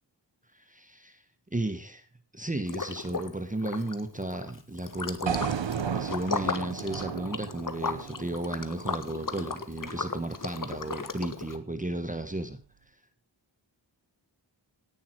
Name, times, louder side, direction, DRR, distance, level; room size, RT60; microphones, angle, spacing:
voice 1, 0.5-1.2 1.5-2.1 2.3-5.5 5.9-12.6, right 1 dB, 20° right, 9 dB, 1.4 m, -34 dB
Liquid, 2.7-3.3 3.6-11.6, left 4 dB, 45° left, 1.7 m, -36 dB
sound 1, 5.3-9.4, right 8 dB, 80° right, 1.0 m, -34 dB
18.0 x 11.0 x 4.7 m, 0.35 s
wide cardioid pair, 110°, 44 cm